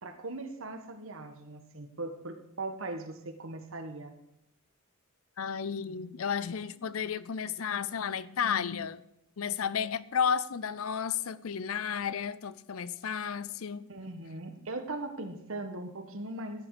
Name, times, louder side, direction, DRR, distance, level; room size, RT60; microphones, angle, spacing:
voice 1, 0.0-4.1 13.9-16.7, right 2 dB, 70° right, 1.6 m, -39 dB
voice 2, 5.4-9.0 9.4-13.9, left 7 dB, 80° left, 0.6 m, -32 dB
13.5 x 10.0 x 5.0 m
head